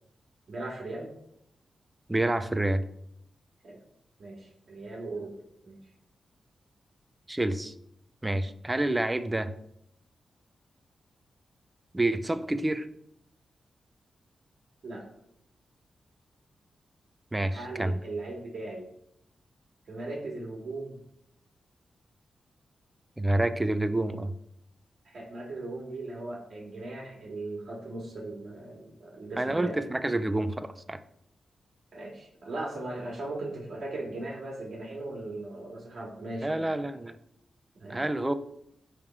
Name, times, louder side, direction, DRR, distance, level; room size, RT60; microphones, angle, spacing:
voice 1, 0.5-1.1 3.6-3.8 4.2-5.3 5.6-5.8 14.8-15.0 17.5-18.9 19.9-21.0 25.0-29.8 31.9-36.7 37.8-38.1, right 2 dB, 65° right, -1 dB, 2.1 m, -38 dB
voice 2, 2.1-2.8 7.3-7.7 8.2-9.5 11.9-12.9 17.3-18.0 23.2-24.3 29.4-31.0 36.4-37.2 37.9-38.3, right 1 dB, 15° right, 11 dB, 0.6 m, -28 dB
10.0 x 3.7 x 4.6 m, 0.75 s
cardioid pair, 85°, 0 cm